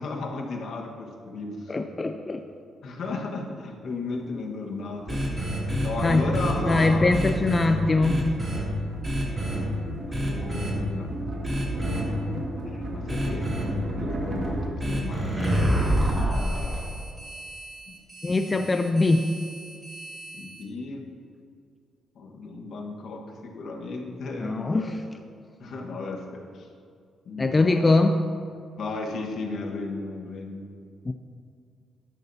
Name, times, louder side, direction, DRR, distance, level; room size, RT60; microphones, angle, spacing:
voice 1, 0.0-1.9 2.8-5.2 5.8-7.4 9.4-11.1 12.6-16.8 17.9-18.0 18.4-18.7 20.3-21.0 22.1-24.9 25.6-26.7 27.2-27.9 28.8-30.7, left 3 dB, 65° left, 0 dB, 1.5 m, -35 dB
voice 2, 1.7-2.4 6.0-6.2 6.7-8.3 18.2-19.3 24.4-25.0 27.4-28.2 31.1-31.2, left 2 dB, 25° left, 6 dB, 0.4 m, -22 dB
sound 1, 3.9-4.0 5.0-15.6, right 1 dB, 50° right, 1.9 m, -35 dB
sound 2, 5.1-7.7 8.0-8.6 9.0-9.6 10.1-10.7 11.4-12.0 13.1-13.6 14.8-20.6, equal, 20° right, 2.8 m, -28 dB
12.0 x 10.5 x 2.8 m, 2.3 s
cardioid pair, 90°, 0 cm